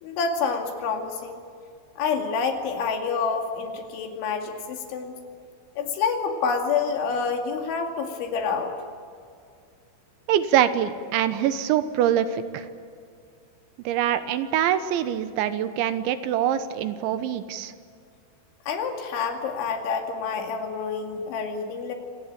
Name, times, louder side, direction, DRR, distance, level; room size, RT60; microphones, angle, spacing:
voice 1, 0.0-1.4 2.0-5.2 5.8-8.7 18.7-21.9, left 5 dB, 85° left, 3 dB, 4.8 m, -28 dB
voice 2, 10.3-12.7 13.9-17.7, right 10 dB, 85° right, 11 dB, 3.4 m, -24 dB
27.0 x 19.0 x 8.9 m, 2.3 s
omnidirectional pair, 5.3 m